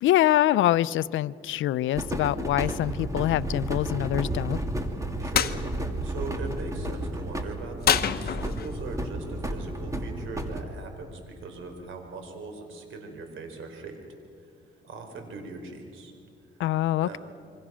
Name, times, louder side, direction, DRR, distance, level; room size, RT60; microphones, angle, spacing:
voice 1, 0.0-4.6 16.6-17.2, left 13 dB, 75° left, 17 dB, 0.6 m, -24 dB
sound 1, 1.9-10.6, right 1 dB, 15° right, 2.5 m, -32 dB
voice 2, 5.2-14.0 14.4-14.5 14.8-16.1 17.0-17.2, right 3 dB, 80° right, 5 dB, 4.3 m, -40 dB
sound 2, 5.3-5.6 7.8-8.8, left 8 dB, 50° left, 1.1 m, -25 dB
27.0 x 24.5 x 6.3 m, 2.4 s
cardioid pair, 90°, 20 cm